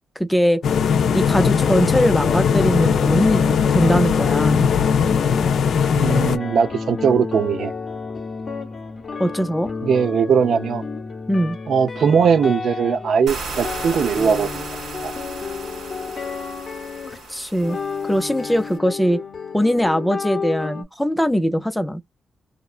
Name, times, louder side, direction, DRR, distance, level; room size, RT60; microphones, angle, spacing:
voice 1, 0.2-0.6 1.1-4.7 9.2-9.7 11.3-11.6 17.3-17.8 18.0-19.2 19.5-22.0, equal, 5° left, 0.4 m, -21 dB
sound 1, 0.6-6.4, left 7 dB, 70° left, 0.4 m, -19 dB
sound 2, 1.3-20.8, left 5 dB, 35° left, 0.8 m, -31 dB
voice 2, 6.0-7.7 9.8-10.9 11.7-14.6 15.0-15.1, right 6 dB, 65° right, 0.3 m, -19 dB
sound 3, 13.3-18.8, right 3 dB, 90° right, 0.8 m, -35 dB
2.8 x 2.2 x 2.3 m
wide cardioid pair, 145°, 0 cm